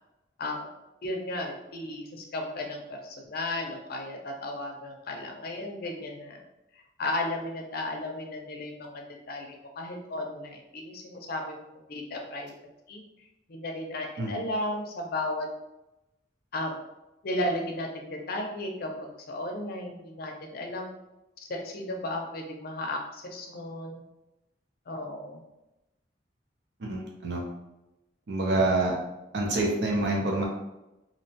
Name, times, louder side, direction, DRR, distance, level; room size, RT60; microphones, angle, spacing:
voice 1, 1.0-6.4 7.0-12.5 12.9-13.0 13.5-15.5 16.5-16.7 17.2-20.9 21.5-24.0 24.9-25.4, left 1 dB, 55° left, 2 dB, 0.5 m, -34 dB
voice 2, 26.8-27.4 28.3-29.0 29.3-30.4, right 2 dB, 65° right, -1 dB, 0.5 m, -26 dB
2.8 x 2.1 x 2.8 m, 0.94 s
head